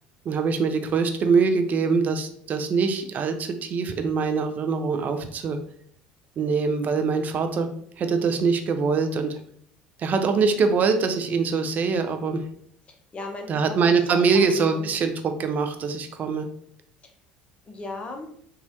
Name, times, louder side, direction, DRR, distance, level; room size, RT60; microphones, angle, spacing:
voice 1, 0.3-5.6 6.4-7.7 8.0-9.4 10.0-12.4 13.5-16.5, right 5 dB, 35° right, 7 dB, 0.4 m, -23 dB
voice 2, 12.9-13.8 14.1-14.5 14.7-14.9 17.0-17.1 17.6-18.3, left 2 dB, 25° left, 3 dB, 0.5 m, -37 dB
3.0 x 2.3 x 2.7 m, 0.63 s
figure-of-eight pair, 65°, 5 cm